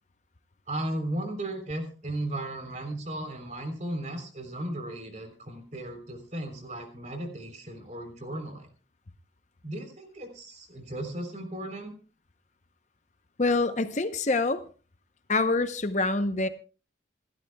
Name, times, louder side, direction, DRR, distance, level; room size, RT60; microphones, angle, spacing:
voice 1, 0.7-8.7 9.6-11.9, right 1 dB, 40° right, 3.5 m, -35 dB
voice 2, 13.4-14.6 15.3-16.5, left 3 dB, 40° left, 0.7 m, -25 dB
27.5 x 12.5 x 2.3 m
head